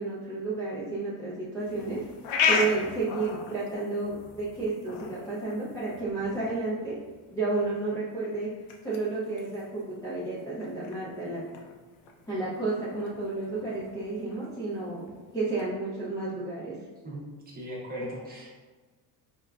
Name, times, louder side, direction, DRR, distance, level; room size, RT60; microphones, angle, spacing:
voice 1, 0.0-2.0 2.5-7.0 7.3-8.5 8.8-11.4 12.3-16.8, right 3 dB, 10° left, -10 dB, 0.4 m, -31 dB
sound 1, 1.6-15.7, left 5 dB, 80° left, 0.6 m, -36 dB
voice 2, 17.0-18.5, equal, 20° right, -5 dB, 0.7 m, -38 dB
4.7 x 2.1 x 2.3 m, 1.3 s
cardioid pair, 155°, 41 cm